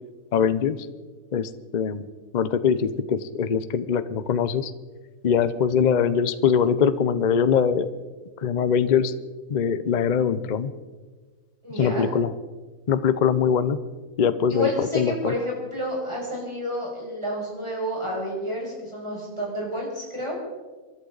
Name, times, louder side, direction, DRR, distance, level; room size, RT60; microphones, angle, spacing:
voice 1, 0.3-0.8 1.3-2.0 2.3-4.7 5.2-7.9 8.4-9.2 9.5-10.7 11.8-12.3 12.9-13.8 14.2-15.3, left 7 dB, 45° left, 13 dB, 0.6 m, -22 dB
voice 2, 11.6-12.1 14.5-20.4, equal, 15° right, -4 dB, 5.7 m, -30 dB
27.0 x 11.5 x 4.0 m, 1.4 s
omnidirectional pair, 1.6 m